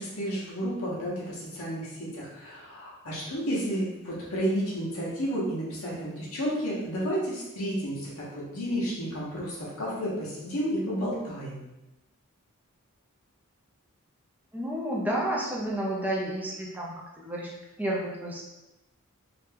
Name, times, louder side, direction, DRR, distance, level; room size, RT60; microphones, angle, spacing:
voice 1, 0.0-11.7, equal, 80° left, -6 dB, 1.1 m, -31 dB
voice 2, 14.5-17.5 17.8-18.4, right 1 dB, 5° right, -3 dB, 0.5 m, -31 dB
2.9 x 2.2 x 3.4 m, 0.99 s
head